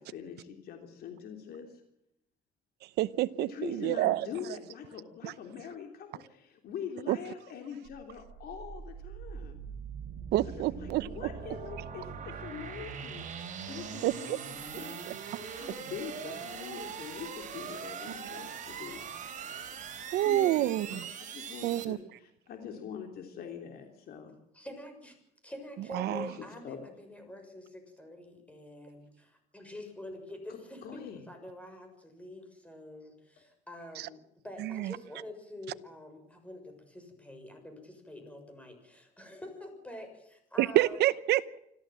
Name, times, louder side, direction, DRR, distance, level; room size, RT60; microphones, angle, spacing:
voice 1, 0.0-1.8 3.5-9.6 10.7-13.3 13.7-15.1 15.5-19.0 20.2-21.0 21.3-24.4 26.0-26.8 30.8-31.2, left 8 dB, 65° left, 3.3 m, -43 dB
voice 2, 3.0-4.3 5.2-5.3 7.1-7.2 10.3-11.3 14.0-14.4 15.1-15.2 20.1-21.1 21.6-22.0 25.9-26.3 34.0-34.1 34.6-35.0 40.6-41.6, right 15 dB, 80° right, 0.9 m, -28 dB
sound 1, 7.8-21.8, right 7 dB, 50° right, 3.8 m, -42 dB
voice 3, 24.5-25.1 25.4-41.0, left 1 dB, 10° left, 6.8 m, -47 dB
26.5 x 14.5 x 7.7 m
cardioid pair, 110°, 17 cm